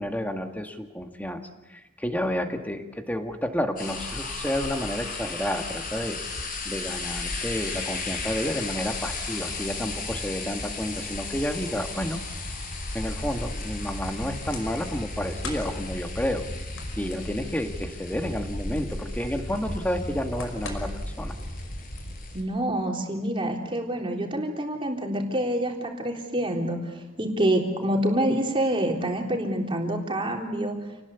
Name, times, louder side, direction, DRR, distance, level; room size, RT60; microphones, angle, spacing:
voice 1, 0.0-1.4 1.7-12.2 12.9-16.5 17.0-20.9 21.2-21.3, equal, 10° left, 5 dB, 2.0 m, -30 dB
sound 1, 3.8-22.4, left 4 dB, 45° left, 5.0 m, -36 dB
sound 2, 6.9-22.2, equal, 80° left, 5.4 m, -37 dB
voice 2, 22.3-30.8, right 1 dB, 25° right, 2 dB, 3.7 m, -27 dB
28.5 x 19.5 x 8.4 m, 1.0 s
head